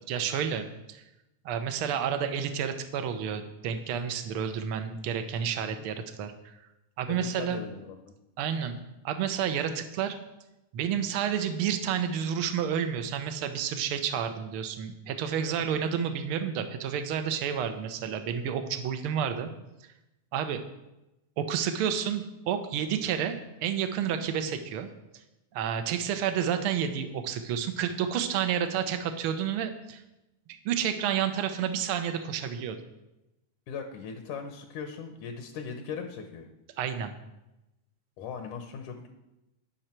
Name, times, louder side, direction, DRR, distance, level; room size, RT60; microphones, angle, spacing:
voice 1, 0.1-1.0 1.4-6.5 7.0-7.6 8.4-8.7 9.0-10.2 10.7-19.5 20.3-20.6 21.4-24.9 25.5-30.0 30.5-32.8 36.8-37.1, right 8 dB, 70° right, 8 dB, 1.4 m, -30 dB
voice 2, 7.1-8.1 15.7-15.8 33.7-36.5 38.2-39.1, left 6 dB, 75° left, 5 dB, 2.4 m, -39 dB
19.5 x 6.5 x 4.5 m, 0.93 s
omnidirectional pair, 3.6 m